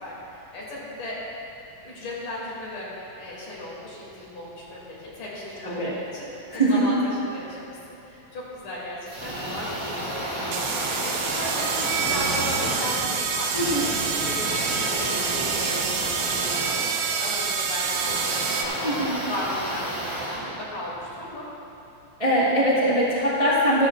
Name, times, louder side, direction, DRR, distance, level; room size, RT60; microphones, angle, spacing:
voice 1, 0.0-1.2 1.8-7.8 8.0-21.4, left 1 dB, 80° left, -7 dB, 4.3 m, -36 dB
voice 2, 5.6-5.9 6.5-6.8 13.5-13.8 18.8-19.2 22.2-23.9, right 1 dB, 20° right, -8 dB, 1.0 m, -22 dB
sound 1, 9.1-21.3, right 1 dB, 45° right, 0.3 m, -32 dB
sound 2, 9.7-9.8 10.5-18.6, right 6 dB, 75° right, 2.1 m, -27 dB
14.0 x 13.5 x 2.5 m, 2.8 s
omnidirectional pair, 3.5 m